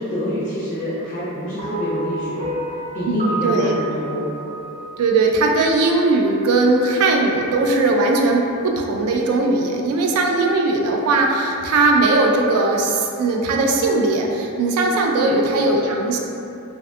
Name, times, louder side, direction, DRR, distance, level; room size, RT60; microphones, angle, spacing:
voice 1, 0.0-2.5 2.9-4.3 15.2-15.4, equal, 35° left, -9 dB, 0.4 m, -27 dB
sound 1, 1.6-5.9, right 1 dB, 35° right, 0.7 m, -30 dB
voice 2, 3.1-3.7 5.0-16.2, right 2 dB, 75° right, 2 dB, 0.3 m, -19 dB
2.5 x 2.2 x 2.5 m, 2.7 s
head